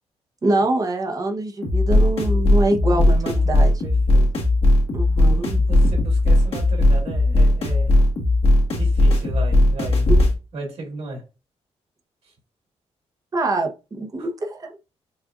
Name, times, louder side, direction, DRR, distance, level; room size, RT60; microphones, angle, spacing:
voice 1, 0.4-3.7 4.9-5.5 10.1-10.3 13.3-14.8, right 2 dB, 30° right, 3 dB, 0.8 m, -24 dB
sound 1, 1.6-10.3, left 1 dB, 55° left, 1.4 m, -17 dB
voice 2, 2.8-3.3 3.8-4.3 5.3-7.9 8.7-10.1 10.5-11.2 14.2-14.3, right 3 dB, 70° right, -1 dB, 2.2 m, -35 dB
6.3 x 2.5 x 2.5 m, 0.29 s
wide cardioid pair, 135°, 12 cm